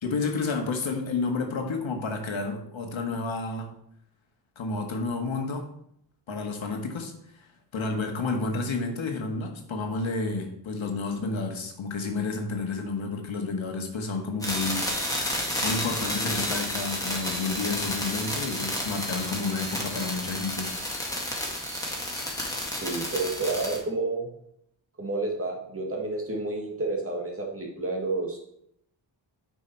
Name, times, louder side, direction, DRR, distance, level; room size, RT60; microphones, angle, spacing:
voice 1, 0.0-3.7 4.6-5.7 6.3-14.9 15.6-21.2, left 3 dB, 80° left, 3 dB, 1.6 m, -31 dB
sound 1, 14.4-23.8, left 1 dB, 10° left, 1.9 m, -31 dB
voice 2, 22.7-24.3 25.0-28.4, right 2 dB, 30° right, 0 dB, 1.8 m, -30 dB
9.4 x 5.5 x 4.4 m, 0.72 s
wide cardioid pair, 165°, 46 cm